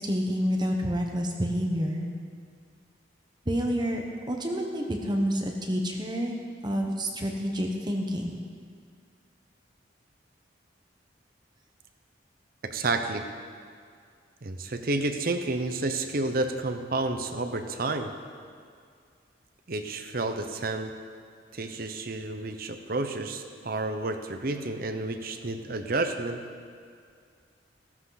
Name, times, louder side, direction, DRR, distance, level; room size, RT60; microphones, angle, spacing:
voice 1, 0.0-2.1 3.5-6.3 6.6-8.4, equal, 25° right, 1 dB, 1.2 m, -28 dB
voice 2, 12.6-13.3 14.4-18.2 19.7-21.0 21.5-26.4, right 2 dB, 50° right, 7 dB, 0.9 m, -30 dB
15.5 x 13.5 x 4.1 m, 2.2 s
head